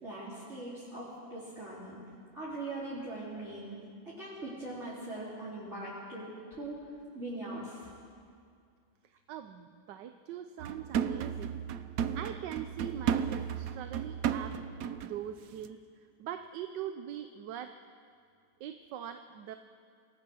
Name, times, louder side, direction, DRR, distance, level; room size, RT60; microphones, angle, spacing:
voice 1, 0.0-2.0 2.3-6.9 7.1-7.8, right 2 dB, 40° right, -10 dB, 4.3 m, -41 dB
voice 2, 9.3-11.6 12.1-14.6 15.0-15.8 16.2-17.8 18.6-19.6, right 10 dB, 85° right, 8 dB, 1.4 m, -42 dB
sound 1, 10.6-15.2 15.5-15.7, right 8 dB, 60° right, 1.1 m, -34 dB
26.5 x 18.5 x 6.2 m, 2.3 s
omnidirectional pair, 1.8 m